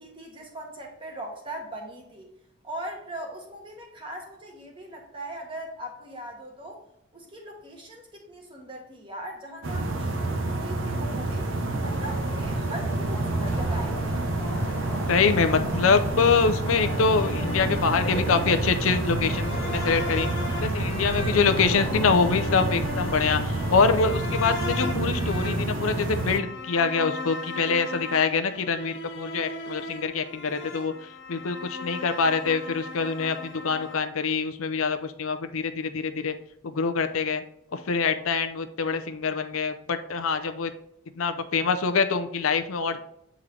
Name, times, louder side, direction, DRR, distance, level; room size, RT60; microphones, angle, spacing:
voice 1, 0.0-2.3 2.6-6.8 7.1-11.5 11.8-14.3, right 1 dB, 25° right, 1 dB, 1.3 m, -40 dB
sound 1, 9.6-26.4, right 2 dB, 70° right, 0.7 m, -28 dB
sound 2, 11.9-24.1, equal, 10° left, 0.8 m, -39 dB
voice 2, 15.1-20.3 20.6-30.9 31.3-36.3 36.6-37.4 37.7-40.7 41.2-43.0, left 5 dB, 80° left, 8 dB, 0.5 m, -25 dB
sound 3, 16.8-34.0, left 3 dB, 60° left, 1.0 m, -38 dB
8.1 x 3.7 x 3.2 m, 0.79 s
head